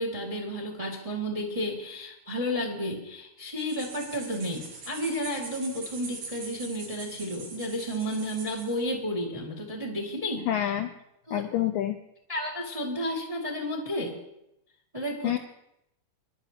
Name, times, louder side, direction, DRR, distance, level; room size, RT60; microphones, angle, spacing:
voice 1, 0.0-10.5 11.3-11.4 12.3-14.2 14.9-15.4, equal, 15° right, -1 dB, 1.1 m, -32 dB
sound 1, 3.6-8.8, right 4 dB, 70° right, 5.0 m, -43 dB
voice 2, 10.5-10.9 11.3-12.0 15.2-15.4, left 12 dB, 80° left, 5 dB, 2.0 m, -27 dB
24.5 x 11.5 x 2.9 m, 0.84 s
omnidirectional pair, 4.5 m